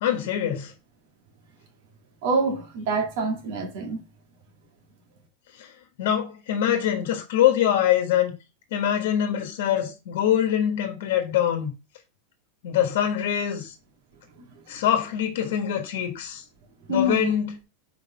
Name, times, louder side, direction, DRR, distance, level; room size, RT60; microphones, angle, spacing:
voice 1, 0.0-0.7 5.6-5.7 6.0-8.3 8.7-11.7 12.6-13.7 14.7-16.4 16.9-17.5, left 10 dB, 60° left, 1.4 m, -24 dB
voice 2, 2.2-4.0 14.4-14.5 16.9-17.3, right 2 dB, 50° right, 1.9 m, -26 dB
4.8 x 4.2 x 5.6 m
supercardioid pair, 175°, 0 cm